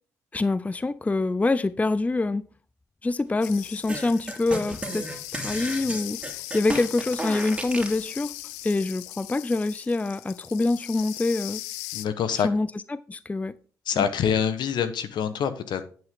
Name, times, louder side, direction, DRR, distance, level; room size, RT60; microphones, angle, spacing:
voice 1, 0.3-2.4 3.0-5.1 5.3-8.3 8.6-11.6 12.4-13.5 14.0-14.1, left 3 dB, 15° left, 0.5 m, -26 dB
sound 1, 3.4-12.1, left 17 dB, 85° left, 0.4 m, -39 dB
sound 2, 3.9-8.0, right 1 dB, 10° right, 2.6 m, -33 dB
voice 2, 11.9-12.5 13.9-15.9, left 8 dB, 65° left, 1.2 m, -25 dB
9.4 x 7.9 x 3.7 m
hypercardioid pair, 50°, 8 cm